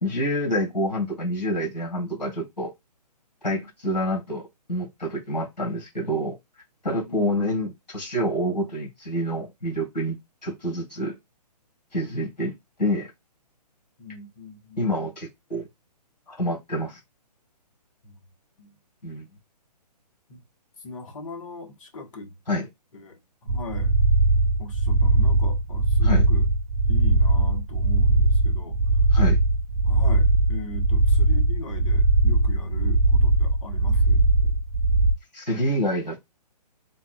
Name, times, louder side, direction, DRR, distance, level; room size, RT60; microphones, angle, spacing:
voice 1, 0.0-2.7 3.4-6.3 6.8-10.2 10.4-11.1 11.9-12.5 12.8-13.1 14.8-15.7 16.3-17.0 19.0-19.2 22.5-22.7 26.0-26.2 29.1-29.4 35.3-36.2, equal, 85° left, 2.1 m, -27 dB
voice 2, 7.0-7.6 14.0-15.1 18.0-18.2 18.6-18.8 20.3-20.4 20.8-22.3 22.9-24.0 24.6-26.5 26.9-28.8 29.8-34.6, left 2 dB, 50° left, 1.2 m, -39 dB
sound 1, 23.5-35.1, right 2 dB, 75° right, 0.5 m, -20 dB
4.0 x 2.4 x 2.3 m
figure-of-eight pair, 135°, 21 cm